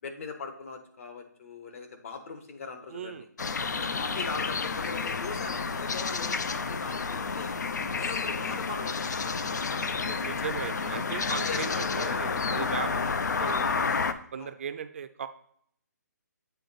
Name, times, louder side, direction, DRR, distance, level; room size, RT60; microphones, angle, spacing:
voice 1, 0.0-3.3 3.8-7.5 7.9-10.2 10.7-10.9 11.3-12.1 13.9-14.5, left 4 dB, 50° left, 5 dB, 1.2 m, -40 dB
voice 2, 2.9-3.3 7.7-8.0 10.2-13.7 14.3-15.3, right 7 dB, 45° right, 10 dB, 0.5 m, -38 dB
sound 1, 3.4-14.1, left 5 dB, 75° left, 0.6 m, -30 dB
8.2 x 3.8 x 4.0 m, 0.63 s
hypercardioid pair, 160°, 9 cm